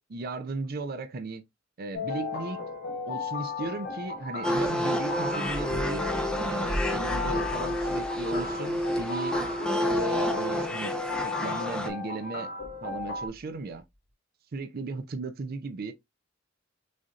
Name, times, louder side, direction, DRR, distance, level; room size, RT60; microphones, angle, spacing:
voice 1, 0.0-1.4 1.8-2.6 3.1-9.4 9.9-11.0 11.2-12.5 12.8-13.8 14.5-15.9, right 3 dB, 50° right, 0.5 m, -36 dB
sound 1, 1.9-13.3, left 4 dB, 55° left, 1.4 m, -35 dB
sound 2, 3.6-3.8 5.5-9.5 9.8-10.1 10.9-11.1 12.6-13.7, equal, 70° left, 1.3 m, -39 dB
sound 3, 4.4-11.9, equal, 5° left, 0.7 m, -30 dB
6.3 x 2.7 x 2.4 m
head